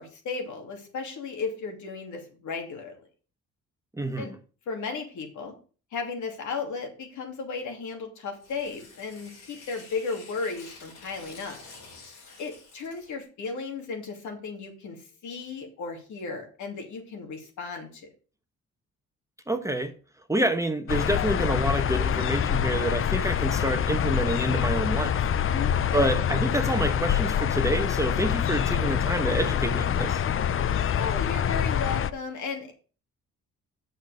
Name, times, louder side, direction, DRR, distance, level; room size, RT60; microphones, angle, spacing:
voice 1, 0.0-3.1 4.2-4.3 4.7-5.5 5.9-11.6 12.4-18.1 25.5-26.1 31.0-32.7, left 4 dB, 75° left, 2.7 m, -35 dB
voice 2, 3.9-4.4 19.5-19.9 20.3-25.3 25.9-30.2, right 1 dB, 10° right, 1.0 m, -28 dB
Tearing, 8.3-13.2, left 3 dB, 90° left, 4.2 m, -49 dB
sound 1, 20.9-32.1, left 9 dB, 45° left, 0.5 m, -26 dB
6.7 x 6.3 x 6.5 m
cardioid pair, 90°, 30 cm